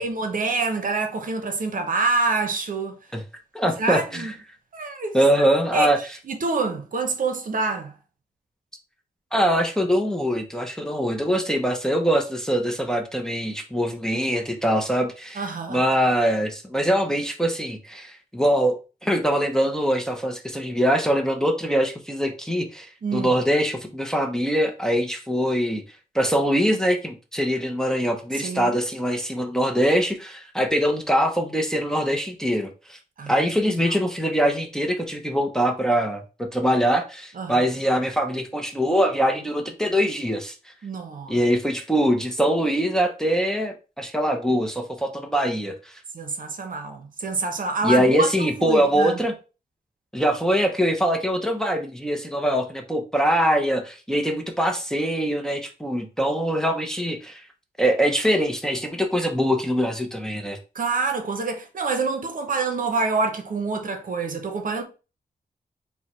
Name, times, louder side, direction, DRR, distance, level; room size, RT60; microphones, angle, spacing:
voice 1, 0.0-3.0 3.8-4.3 4.7-5.2 5.7-7.9 15.3-15.8 23.0-23.3 28.3-28.8 33.2-33.4 33.8-34.1 37.4-37.7 40.8-41.4 46.1-49.2 60.7-64.8, right 3 dB, 55° right, 0.8 m, -27 dB
voice 2, 3.5-4.3 5.1-6.0 9.3-25.8 26.1-33.0 33.3-40.5 41.3-46.0 47.8-49.3 50.1-57.4 57.8-60.6, equal, 5° left, 0.6 m, -23 dB
4.6 x 2.2 x 4.2 m
wide cardioid pair, 115°, 16 cm